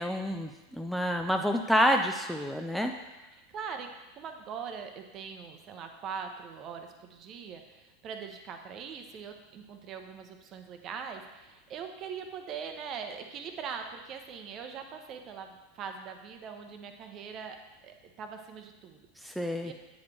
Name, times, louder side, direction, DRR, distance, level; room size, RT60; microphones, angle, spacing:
voice 1, 0.0-2.9 19.2-19.7, equal, ahead, 4 dB, 0.4 m, -28 dB
voice 2, 3.5-17.6 17.8-19.0 19.6-19.7, right 6 dB, 35° right, 6 dB, 0.8 m, -42 dB
9.2 x 5.0 x 3.3 m, 1.1 s
figure-of-eight pair, 85°, 0 cm